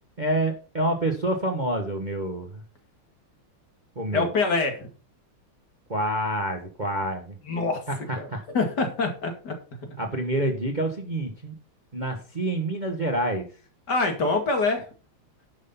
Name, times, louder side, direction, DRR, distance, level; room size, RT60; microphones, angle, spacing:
voice 1, 0.2-2.6 3.9-4.3 5.9-7.3 7.9-8.4 10.0-11.5 11.9-13.5, right 1 dB, 25° right, 3 dB, 1.2 m, -27 dB
voice 2, 4.1-4.9 7.5-7.8 8.2-9.6 13.9-14.9, left 3 dB, 50° left, 4 dB, 2.7 m, -25 dB
11.0 x 6.5 x 5.5 m, 0.36 s
omnidirectional pair, 2.3 m